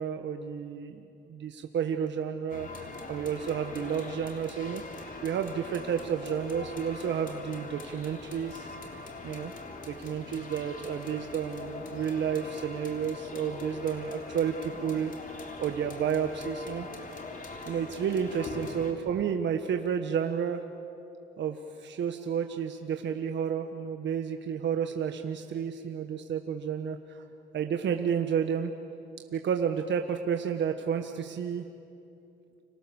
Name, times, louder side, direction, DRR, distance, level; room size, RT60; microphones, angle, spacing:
voice 1, 0.0-4.8 5.2-8.7 9.2-9.5 9.8-16.9 17.7-20.6 21.4-27.2 27.5-28.7 29.3-31.7, right 7 dB, 65° right, 5 dB, 1.5 m, -31 dB
sound 1, 2.5-18.9, left 3 dB, 45° left, 3.4 m, -42 dB
29.5 x 26.5 x 7.2 m, 2.6 s
cardioid pair, 90°, 20 cm